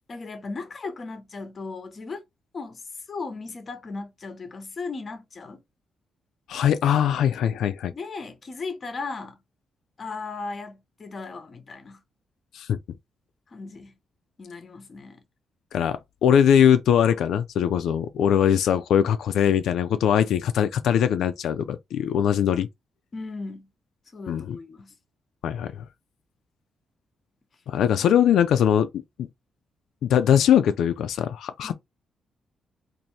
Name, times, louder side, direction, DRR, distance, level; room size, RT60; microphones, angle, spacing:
voice 1, 0.1-2.2 2.5-2.8 3.1-5.6 7.9-9.4 10.0-12.0 13.5-14.0 14.4-15.2 23.1-23.7 24.1-24.9 31.6-31.7, left 4 dB, 30° left, 0.8 m, -36 dB
voice 2, 6.5-7.9 12.5-12.8 15.7-22.7 24.3-24.6 25.4-25.9 27.7-28.9 29.2-29.3 30.0-31.7, left 9 dB, 80° left, 0.4 m, -21 dB
4.1 x 2.6 x 3.1 m
wide cardioid pair, 175°, 0 cm